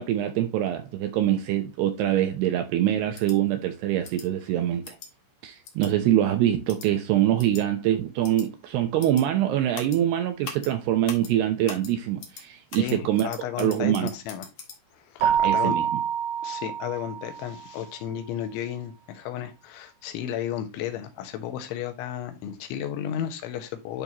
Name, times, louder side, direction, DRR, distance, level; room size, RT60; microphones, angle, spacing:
voice 1, 0.0-5.0 5.4-13.3 13.6-14.1 15.2-15.9, right 12 dB, 80° right, 2.4 m, -24 dB
sound 1, 3.1-3.4 4.0-4.3 4.8-5.1 5.6-5.9 6.7-6.9 7.4-7.6 8.2-8.5 9.0-9.2 9.7-10.0 10.4-10.7 11.1-11.3 11.7-11.9 12.2-12.4 12.7-14.8, left 6 dB, 55° left, 1.9 m, -41 dB
voice 2, 12.8-14.5 14.9-15.8 16.4-24.0, left 10 dB, 80° left, 3.5 m, -33 dB
Keyboard (musical), 15.2-17.7, right 8 dB, 60° right, 2.2 m, -26 dB
11.0 x 4.1 x 2.9 m
omnidirectional pair, 5.4 m